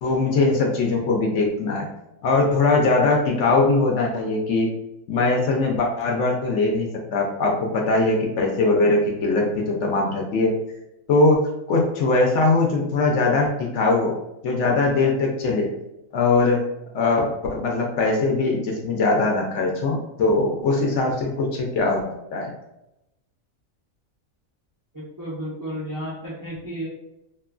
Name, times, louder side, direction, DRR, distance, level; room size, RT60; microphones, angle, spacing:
voice 1, 0.0-1.9 2.2-4.7 5.1-10.5 11.1-11.4 11.7-14.1 14.4-15.7 16.1-16.6 16.9-22.0 22.3-22.5, left 3 dB, 70° left, 0 dB, 0.8 m, -21 dB
voice 2, 24.9-26.9, equal, 30° right, -7 dB, 0.3 m, -32 dB
2.9 x 2.2 x 2.4 m, 0.87 s
omnidirectional pair, 1.4 m